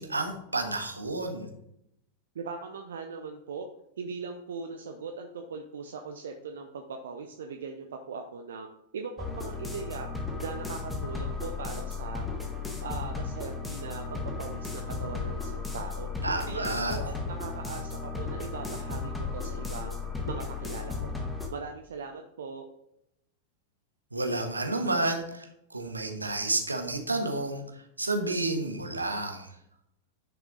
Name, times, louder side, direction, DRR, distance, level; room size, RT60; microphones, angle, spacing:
voice 1, 0.0-1.5 16.2-17.0 24.1-29.5, right 2 dB, 80° right, 5 dB, 1.3 m, -30 dB
voice 2, 2.3-3.7 4.0-8.7 8.9-10.1 10.4-12.2 12.8-16.1 16.5-20.0 20.3-21.1 21.5-22.7, right 5 dB, 65° right, 4 dB, 0.7 m, -40 dB
sound 1, 9.2-21.5, left 4 dB, 10° left, 1.7 m, -35 dB
10.0 x 6.0 x 3.9 m, 0.79 s
figure-of-eight pair, 90°, 0 cm